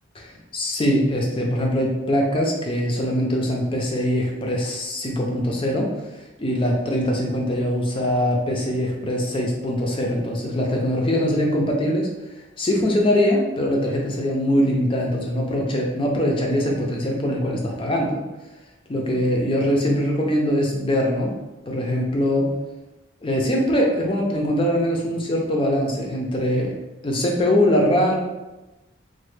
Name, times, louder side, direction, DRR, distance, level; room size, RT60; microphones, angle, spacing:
voice 1, 0.1-5.9 6.4-12.1 12.6-18.2 18.9-21.3 21.7-22.5 23.2-26.7 27.0-28.2, equal, 25° left, -1 dB, 0.4 m, -22 dB
3.0 x 2.1 x 3.2 m, 1.1 s
head